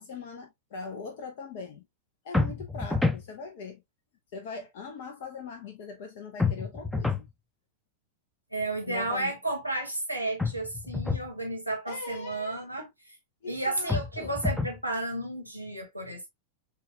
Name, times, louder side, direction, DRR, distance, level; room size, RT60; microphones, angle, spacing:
voice 1, 0.0-1.8 2.2-3.8 4.3-7.3 8.9-9.3 11.9-12.9 13.4-14.4, left 4 dB, 50° left, 0.7 m, -41 dB
sound 1, 2.3-3.3 6.4-7.3 10.4-11.3 13.9-14.8, left 3 dB, 5° left, 0.5 m, -28 dB
voice 2, 8.5-13.2 13.5-16.3, right 2 dB, 90° left, 1.3 m, -32 dB
6.8 x 2.4 x 2.2 m
figure-of-eight pair, 90°, 0 cm